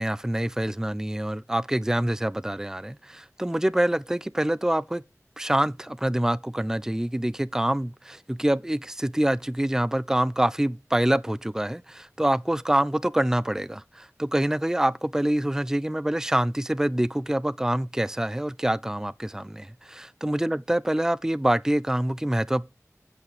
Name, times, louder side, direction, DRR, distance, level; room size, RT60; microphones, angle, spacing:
voice 1, 0.0-5.0 5.4-20.0 20.2-22.7, right 1 dB, 10° right, 0.4 m, -26 dB
8.2 x 7.7 x 5.0 m
wide cardioid pair, 50°, 6 cm